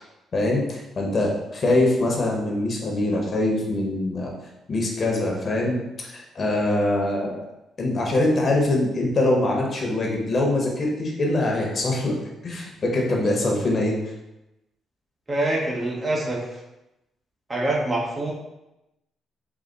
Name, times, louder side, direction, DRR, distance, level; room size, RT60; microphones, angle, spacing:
voice 1, 0.3-4.3 4.7-7.4 7.8-12.2 12.4-13.9, left 2 dB, 45° left, -1 dB, 1.1 m, -23 dB
voice 2, 15.3-16.4 17.5-18.3, right 1 dB, 30° right, -3 dB, 1.1 m, -25 dB
4.1 x 2.8 x 4.0 m, 0.94 s
cardioid pair, 90°, 0 cm